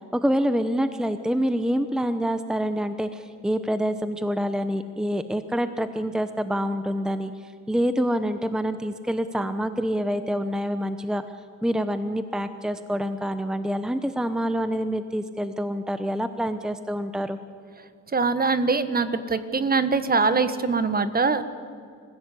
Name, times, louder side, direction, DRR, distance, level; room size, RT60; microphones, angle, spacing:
voice 1, 0.1-7.3 7.7-11.2 11.6-17.4, equal, ahead, 10 dB, 0.9 m, -26 dB
voice 2, 18.1-21.4, right 4 dB, 30° right, 12 dB, 1.4 m, -23 dB
26.0 x 16.0 x 8.5 m, 2.2 s
cardioid pair, 90°, 30 cm